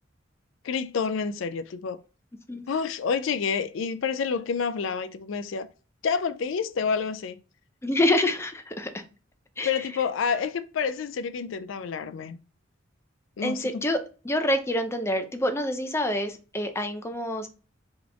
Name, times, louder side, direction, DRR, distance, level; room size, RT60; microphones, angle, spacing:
voice 1, 0.6-2.0 2.7-5.7 6.0-7.4 9.6-12.4 13.4-13.8, left 6 dB, 70° left, 0.4 m, -28 dB
voice 2, 7.8-9.0 9.6-9.7 13.4-17.5, left 1 dB, 15° left, 0.6 m, -27 dB
4.1 x 3.0 x 3.4 m
head